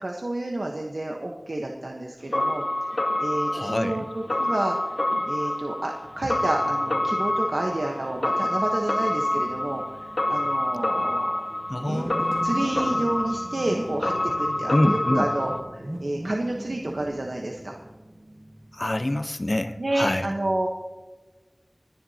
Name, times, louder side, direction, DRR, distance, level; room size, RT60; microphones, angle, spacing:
voice 1, 0.0-5.0 5.3-11.5 11.9-17.8 19.8-20.7, right 1 dB, 85° right, 0 dB, 1.0 m, -30 dB
sound 1, 2.3-15.6, left 1 dB, 85° left, 1.4 m, -27 dB
voice 2, 3.5-4.1 11.7-12.5 14.7-15.3 18.7-20.3, left 1 dB, 50° left, 10 dB, 0.7 m, -26 dB
sound 2, 6.0-19.3, right 1 dB, 40° right, 1.2 m, -40 dB
28.0 x 10.5 x 2.8 m, 1.3 s
wide cardioid pair, 40°, 0 cm